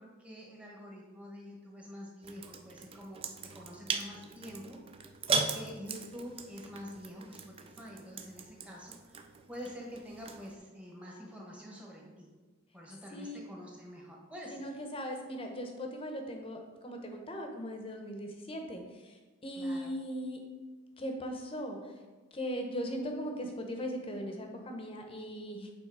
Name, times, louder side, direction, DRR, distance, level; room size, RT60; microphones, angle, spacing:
voice 1, 0.0-3.2 3.5-4.8 5.3-12.3 12.7-14.7 19.6-19.9, equal, 5° right, -2 dB, 1.1 m, -47 dB
sound 1, 2.2-10.5, right 4 dB, 30° right, 0.4 m, -39 dB
voice 2, 14.5-20.4 21.0-21.9 22.3-25.7, equal, 25° left, 4 dB, 0.8 m, -39 dB
8.3 x 3.8 x 4.8 m, 1.3 s
head